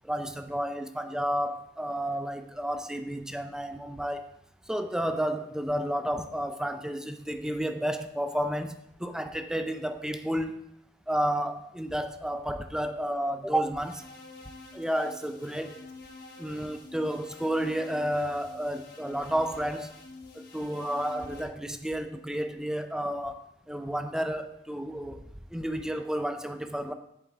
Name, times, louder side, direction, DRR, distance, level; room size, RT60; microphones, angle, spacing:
voice 1, 0.0-4.3 4.7-10.6 11.1-14.0 14.7-15.8 16.4-20.0 20.3-25.2 25.5-26.9, equal, 5° right, 8 dB, 0.4 m, -31 dB
sound 1, 13.8-21.4, left 3 dB, 50° left, 1.2 m, -48 dB
8.5 x 7.2 x 3.5 m, 0.77 s
head